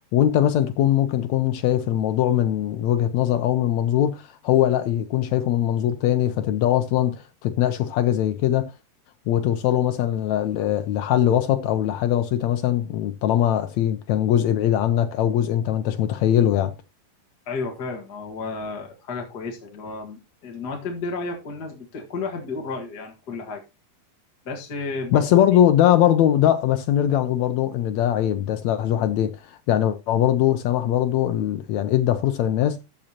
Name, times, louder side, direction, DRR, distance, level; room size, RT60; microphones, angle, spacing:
voice 1, 0.1-8.7 9.3-16.7 25.1-32.8, left 11 dB, 80° left, 1.6 m, -21 dB
voice 2, 17.4-23.6 24.4-25.2, left 3 dB, 40° left, 1.6 m, -32 dB
13.5 x 9.0 x 2.9 m
omnidirectional pair, 4.0 m